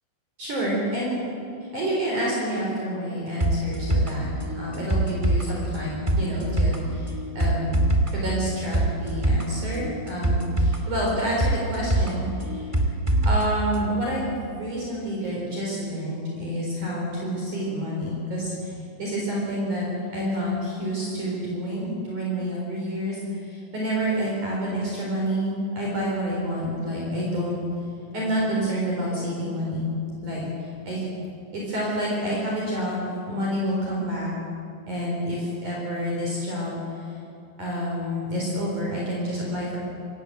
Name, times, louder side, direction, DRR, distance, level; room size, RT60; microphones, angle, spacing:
voice 1, 0.4-1.2 1.7-7.8 8.1-12.7 13.2-19.9 20.1-27.6 28.1-29.8 30.2-31.1 31.5-34.3 34.9-37.2 37.6-39.8, equal, 40° right, -4 dB, 5.3 m, -28 dB
sound 1, 3.4-13.4 13.7-13.8, right 1 dB, 25° right, 0.6 m, -24 dB
25.5 x 19.0 x 7.8 m, 2.6 s
omnidirectional pair, 5.5 m